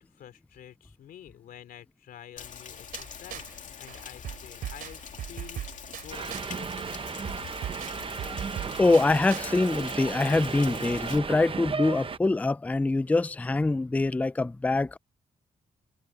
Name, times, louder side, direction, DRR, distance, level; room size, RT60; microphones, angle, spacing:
voice 1, 0.0-6.8 7.2-7.5, left 10 dB, 85° left, 3.6 m, -49 dB
Rain, 2.4-11.2, left 7 dB, 60° left, 2.5 m, -44 dB
sound 1, 2.9-3.6 3.9-6.6 6.9-9.5, right 11 dB, 90° right, 3.0 m, -40 dB
Subway metro underground, 6.1-12.2, right 5 dB, 40° right, 0.9 m, -35 dB
voice 2, 8.8-15.0, left 2 dB, 10° left, 0.4 m, -24 dB
cardioid pair, 90°, 15 cm